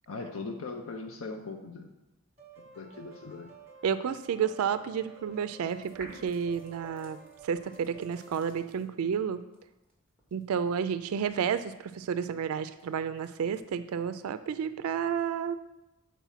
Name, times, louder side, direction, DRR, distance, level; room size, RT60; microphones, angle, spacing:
voice 1, 0.1-1.9 2.8-3.5, left 3 dB, 65° left, 3 dB, 0.6 m, -39 dB
sound 1, 2.4-8.3, right 4 dB, 30° right, 1.3 m, -52 dB
voice 2, 3.8-9.4 10.3-15.6, right 7 dB, 85° right, 12 dB, 0.3 m, -31 dB
sound 2, 5.7-8.8 9.5-14.4, equal, 5° left, 1.9 m, -55 dB
7.2 x 4.2 x 5.6 m, 0.97 s
head